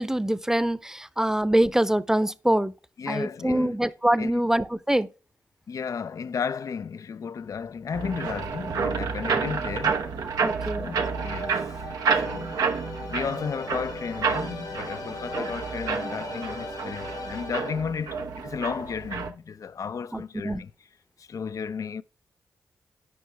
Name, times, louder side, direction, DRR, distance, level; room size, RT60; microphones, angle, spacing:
voice 1, 0.0-2.7 3.1-5.1 10.4-10.9 15.4-15.5 20.1-20.6, right 1 dB, 10° right, 0.8 m, -24 dB
voice 2, 3.0-3.8 4.2-4.3 5.7-10.1 10.7-11.8 12.2-12.6 13.0-20.7 21.2-22.0, left 6 dB, 60° left, 0.5 m, -33 dB
sound 1, 7.9-19.3, right 5 dB, 85° right, 0.9 m, -30 dB
sound 2, 11.1-18.0, left 3 dB, 85° left, 3.4 m, -39 dB
9.5 x 5.4 x 3.4 m
supercardioid pair, 45°, 6 cm